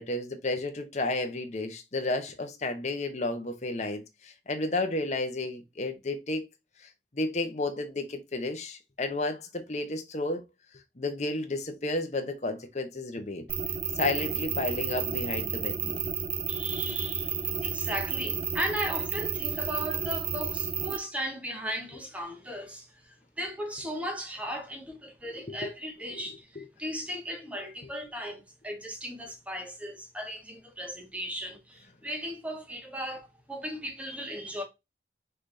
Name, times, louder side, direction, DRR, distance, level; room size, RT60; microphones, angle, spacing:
voice 1, 0.0-6.5 7.1-10.4 11.0-13.5 14.0-16.0 25.3-25.7 26.1-26.2 26.6-26.7, left 2 dB, 40° left, 0.9 m, -32 dB
sound 1, 13.5-21.0, right 7 dB, 35° right, 0.6 m, -31 dB
voice 2, 16.5-34.6, equal, 10° right, 1.3 m, -37 dB
5.8 x 3.3 x 2.7 m
head